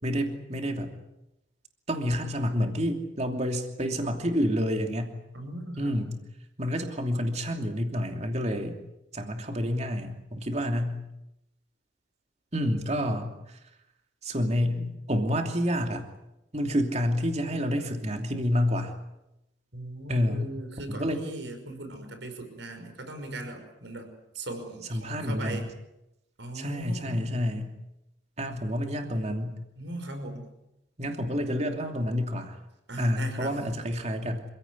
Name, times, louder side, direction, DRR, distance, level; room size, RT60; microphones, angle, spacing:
voice 1, 0.0-0.9 1.9-5.2 5.8-6.1 6.6-8.8 9.1-11.0 12.5-13.6 14.2-16.0 16.5-18.9 20.1-20.5 20.9-21.2 24.9-25.7 26.5-27.7 28.4-29.6 31.0-32.5 33.0-34.5, equal, 35° right, 4 dB, 2.9 m, -28 dB
voice 2, 5.3-6.0 19.7-25.7 26.4-27.4 29.8-30.5 32.9-33.6, right 2 dB, 70° right, 6 dB, 5.7 m, -39 dB
27.5 x 16.5 x 9.7 m, 0.89 s
head